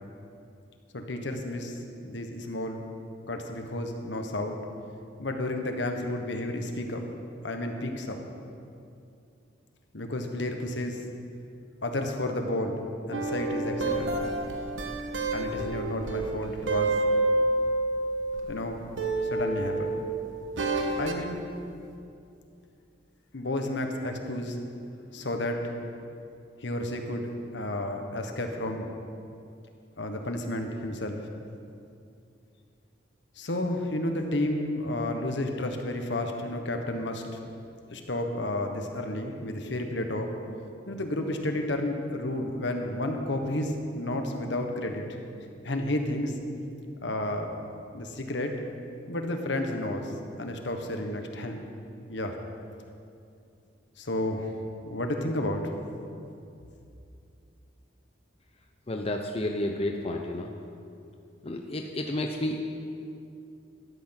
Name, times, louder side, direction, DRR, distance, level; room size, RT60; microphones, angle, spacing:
voice 1, 0.9-2.8 3.3-4.6 5.2-7.0 7.4-8.2 9.9-11.0 11.8-14.2 15.3-17.0 18.5-18.8 19.3-19.9 21.0-21.4 23.3-24.6 25.1-25.7 26.6-28.9 30.0-31.2 33.4-37.2 37.9-40.3 40.9-45.0 45.6-46.4 47.0-47.6 47.9-48.5 49.1-51.6 52.1-52.3 54.0-55.7, left 1 dB, 70° left, 4 dB, 1.3 m, -31 dB
sound 1, 13.1-18.6 19.0-21.3, right 2 dB, 90° right, 1.2 m, -29 dB
voice 2, 58.9-60.5 61.4-62.6, left 1 dB, 30° left, 3 dB, 0.7 m, -31 dB
13.0 x 10.0 x 5.9 m, 2.6 s
head